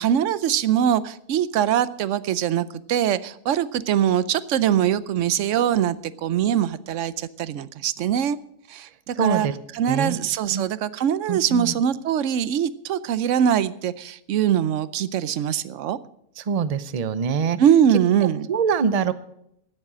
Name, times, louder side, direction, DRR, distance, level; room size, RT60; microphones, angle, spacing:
voice 1, 0.0-8.4 8.7-9.5 9.7-16.0 17.6-18.5, right 9 dB, 65° right, 16 dB, 0.9 m, -22 dB
voice 2, 9.2-9.5 9.9-10.2 10.5-10.6 11.3-11.7 16.4-17.6 18.5-19.1, right 6 dB, 45° right, 14 dB, 0.4 m, -24 dB
14.0 x 9.9 x 6.2 m, 0.75 s
omnidirectional pair, 1.6 m